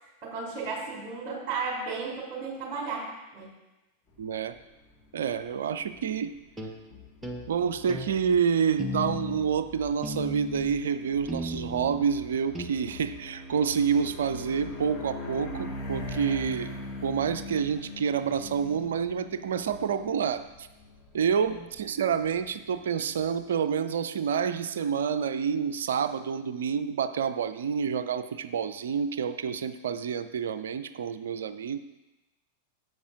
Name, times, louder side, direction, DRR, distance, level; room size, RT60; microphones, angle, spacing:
voice 1, 0.0-3.1 3.3-3.5 21.4-21.6, right 4 dB, 35° right, -2 dB, 3.1 m, -34 dB
sound 1, 4.1-23.4, left 1 dB, 25° left, 1.8 m, -43 dB
voice 2, 4.2-4.5 5.1-6.3 7.5-16.7 17.0-20.7 21.1-31.8, right 7 dB, 60° right, 12 dB, 0.4 m, -28 dB
sound 2, 6.6-6.8 7.2-7.4 7.9-8.1 8.8-9.4 10.0-10.7 11.3-12.0 12.5-12.7, left 1 dB, 10° right, 0.9 m, -35 dB
sound 3, 6.9-8.4 8.7-10.0 10.5-10.8 11.1-13.2 13.5-14.8 15.3-15.6 15.9-16.5, left 8 dB, 60° left, 1.3 m, -49 dB
12.0 x 7.7 x 2.5 m, 1.1 s
figure-of-eight pair, 90°, 0 cm